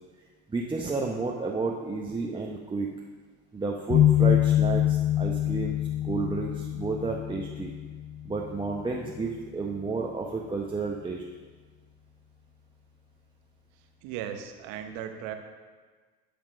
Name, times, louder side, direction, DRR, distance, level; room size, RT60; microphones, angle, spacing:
voice 1, 0.5-2.9 3.5-5.8 6.0-7.7 8.2-11.2, right 3 dB, 15° right, -1 dB, 0.8 m, -31 dB
sound 1, 3.9-9.7, left 12 dB, 50° left, 0.6 m, -26 dB
voice 2, 13.8-15.3, right 9 dB, 75° right, 6 dB, 1.0 m, -37 dB
10.5 x 3.6 x 6.2 m, 1.4 s
supercardioid pair, 80°, 30 cm